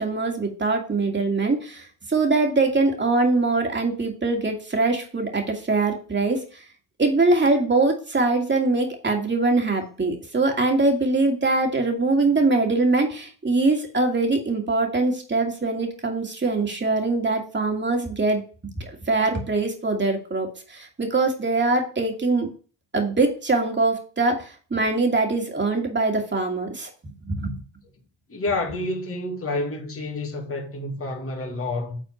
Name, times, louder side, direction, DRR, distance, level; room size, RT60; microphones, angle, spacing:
voice 1, 0.0-6.6 7.0-18.4 18.8-22.5 22.9-26.9 27.3-27.6, right 3 dB, 25° right, 2.5 m, -23 dB
voice 2, 28.3-32.0, left 2 dB, 30° left, 2.1 m, -29 dB
8.2 x 4.1 x 4.5 m
supercardioid pair, 75°, 47 cm